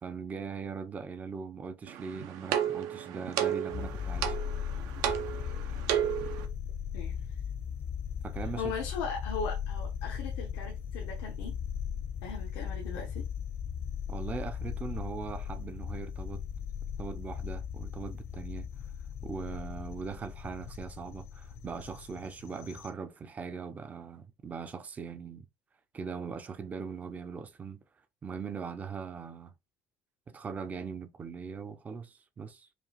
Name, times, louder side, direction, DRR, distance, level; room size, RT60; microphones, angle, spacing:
voice 1, 0.0-4.4 8.2-8.7 14.1-16.4 17.0-18.7 19.2-25.5 25.9-27.8 28.2-29.5 30.3-32.7, right 5 dB, 25° right, 0.5 m, -40 dB
sound 1, 1.9-6.5, right 10 dB, 75° right, 0.7 m, -33 dB
sound 2, 3.7-22.9, left 8 dB, 50° left, 0.7 m, -38 dB
voice 2, 8.6-11.6 12.2-13.3, left 5 dB, 90° left, 1.0 m, -38 dB
5.0 x 2.4 x 2.9 m
cardioid pair, 115°, 6 cm